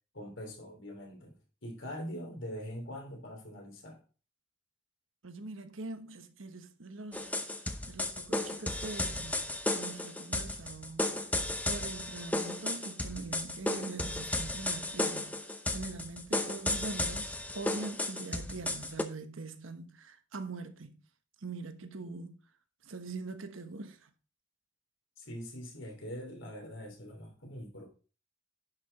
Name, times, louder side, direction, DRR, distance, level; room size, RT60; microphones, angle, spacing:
voice 1, 0.1-4.0 25.2-27.9, equal, 80° left, 3.4 m, -43 dB
voice 2, 5.2-7.3 7.9-9.5 9.7-11.3 11.6-21.0 21.4-22.4 22.8-24.1, right 3 dB, 90° right, 1.2 m, -43 dB
sound 1, 7.1-19.0, left 1 dB, 10° left, 0.7 m, -34 dB
10.5 x 5.9 x 4.2 m
head